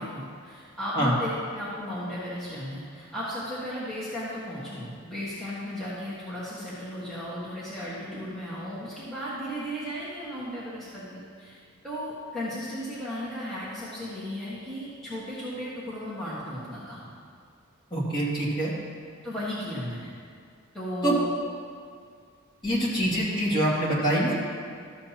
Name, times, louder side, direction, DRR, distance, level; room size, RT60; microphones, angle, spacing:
voice 1, 0.0-11.6 11.8-17.1 19.2-20.1 20.7-21.3, equal, ahead, -11 dB, 1.5 m, -35 dB
voice 2, 17.9-18.7 21.0-21.1 22.6-24.3, right 1 dB, 25° left, -7 dB, 2.2 m, -25 dB
13.5 x 7.7 x 2.9 m, 2.2 s
head